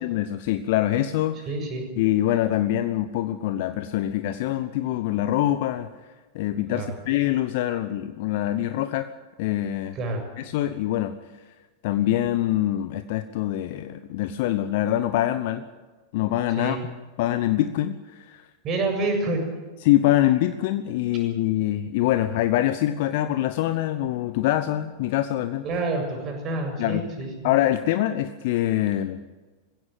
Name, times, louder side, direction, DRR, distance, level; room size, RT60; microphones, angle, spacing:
voice 1, 0.0-1.5 2.0-5.9 6.3-9.1 9.4-10.0 10.4-11.1 11.8-15.6 16.1-16.8 17.2-18.4 19.8-25.7 26.8-27.1 27.4-29.2, left 13 dB, 50° left, 10 dB, 1.0 m, -24 dB
voice 2, 1.5-1.8 6.7-6.9 10.0-10.2 16.6-16.8 18.6-19.4 25.6-27.5, right 2 dB, 30° right, 4 dB, 7.2 m, -27 dB
21.0 x 16.5 x 9.3 m, 1.3 s
figure-of-eight pair, 90°, 0 cm